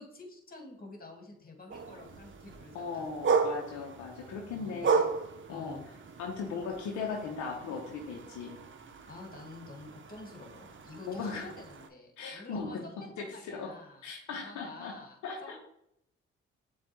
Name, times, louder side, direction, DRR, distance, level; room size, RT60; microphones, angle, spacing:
voice 1, 0.0-3.1 4.5-4.9 5.5-5.8 9.1-15.6, left 2 dB, 30° left, 1 dB, 1.7 m, -49 dB
sound 1, 1.7-11.9, right 5 dB, 40° right, 0.7 m, -35 dB
voice 2, 2.7-5.1 5.5-5.8 6.2-8.6 11.1-11.5 12.2-12.9 13.2-13.7 14.0-14.9 15.2-15.6, left 5 dB, 75° left, 0 dB, 0.7 m, -38 dB
7.1 x 2.4 x 3.0 m, 0.74 s
hypercardioid pair, 45°, 29 cm